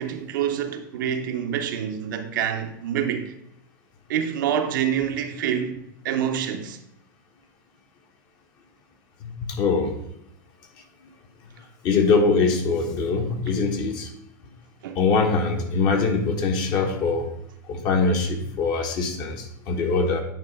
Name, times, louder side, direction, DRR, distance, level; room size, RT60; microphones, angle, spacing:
voice 1, 0.0-3.3 4.1-5.8 6.0-6.8 14.8-15.0, right 9 dB, 85° right, 0.9 m, -26 dB
voice 2, 9.2-9.9 11.8-14.1 14.9-17.3 17.7-20.2, left 4 dB, 45° left, 1.3 m, -23 dB
9.0 x 3.3 x 5.3 m
supercardioid pair, 140°, 10 cm